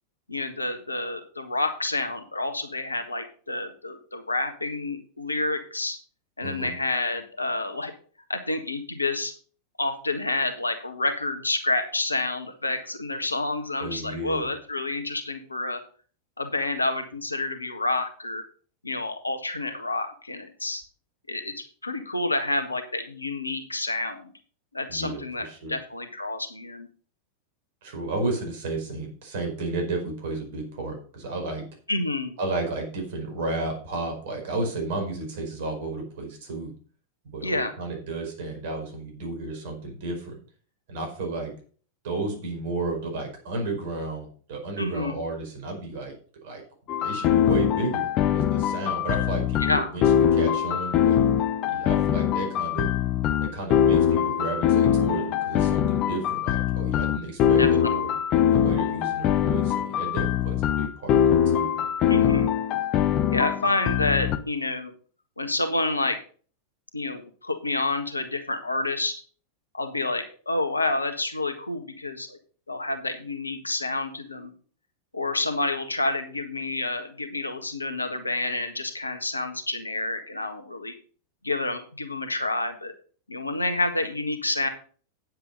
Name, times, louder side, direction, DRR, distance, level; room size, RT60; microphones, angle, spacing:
voice 1, 0.3-6.0 6.4-7.9 8.3-9.3 9.8-15.8 16.4-18.5 18.8-20.8 21.3-24.3 24.7-26.9 31.9-32.4 37.4-37.7 44.8-45.2 49.6-49.9 57.6-58.0 62.1-62.5 63.3-64.9 65.4-66.2 66.9-69.1 69.7-72.4 72.7-74.5 75.1-80.9 81.4-82.9 83.3-84.7, left 2 dB, 80° left, 8 dB, 1.6 m, -29 dB
voice 2, 6.4-6.7 13.8-14.5 24.9-25.8 27.8-31.6 32.4-36.7 37.2-40.3 40.9-41.5 42.0-46.1 46.4-46.6 47.0-51.2 51.7-52.9 53.4-58.1 58.5-61.7, right 2 dB, 55° right, 3 dB, 4.9 m, -33 dB
sound 1, 46.9-64.4, left 9 dB, 35° left, 0.8 m, -23 dB
9.6 x 7.8 x 5.3 m, 0.42 s
figure-of-eight pair, 90°, 0 cm